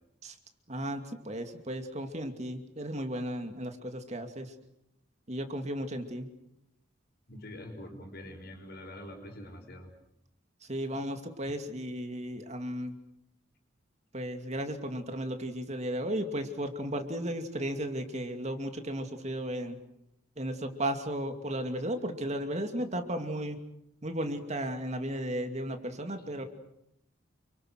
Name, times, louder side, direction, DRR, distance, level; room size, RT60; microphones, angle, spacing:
voice 1, 0.7-4.5 5.3-6.3 10.7-13.0 14.1-19.8 20.4-23.6 24.0-26.4, right 1 dB, 35° right, 6 dB, 2.5 m, -35 dB
voice 2, 7.3-9.9 11.4-11.6, left 1 dB, 55° left, 5 dB, 5.6 m, -45 dB
29.0 x 25.5 x 6.5 m, 0.78 s
head